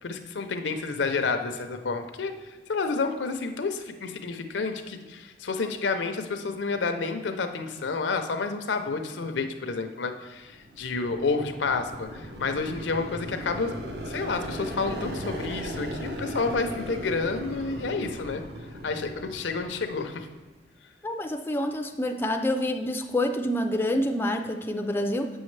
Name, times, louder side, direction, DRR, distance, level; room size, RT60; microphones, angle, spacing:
voice 1, 0.0-2.3 2.7-13.7 14.1-18.4 18.8-20.3, left 4 dB, 90° left, 7 dB, 0.6 m, -30 dB
sound 1, 10.5-20.3, equal, 65° right, 0.8 m, -37 dB
voice 2, 21.0-25.3, left 1 dB, 10° left, 5 dB, 0.3 m, -27 dB
7.7 x 6.3 x 3.2 m, 1.2 s
head